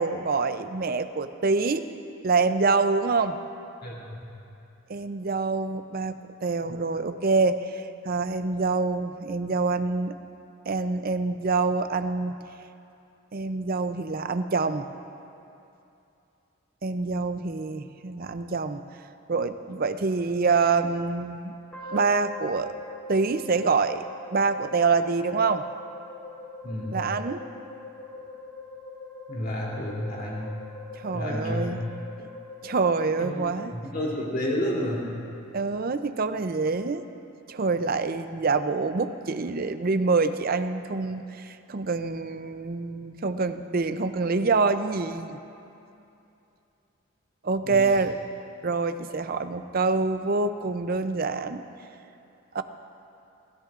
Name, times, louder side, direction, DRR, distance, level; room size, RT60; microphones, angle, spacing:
voice 1, 0.0-1.9 2.2-3.4 4.9-6.1 6.4-10.2 10.7-12.4 13.3-14.9 16.8-18.8 19.3-21.6 21.9-22.7 23.1-24.0 24.3-25.6 26.9-27.4 31.0-31.9 32.2-32.3 32.6-33.7 35.5-37.0 37.5-45.4 47.4-48.2 48.6-51.6 52.5-52.6, right 4 dB, 45° right, 10 dB, 0.5 m, -26 dB
voice 2, 3.8-4.2 26.6-27.0 29.3-30.4 31.1-31.7 33.2-33.4 33.7-35.1 47.6-47.8, left 1 dB, 45° left, -4 dB, 3.0 m, -30 dB
sound 1, 21.7-33.9, left 2 dB, 10° left, 3.1 m, -42 dB
29.5 x 13.5 x 2.5 m, 2.7 s
head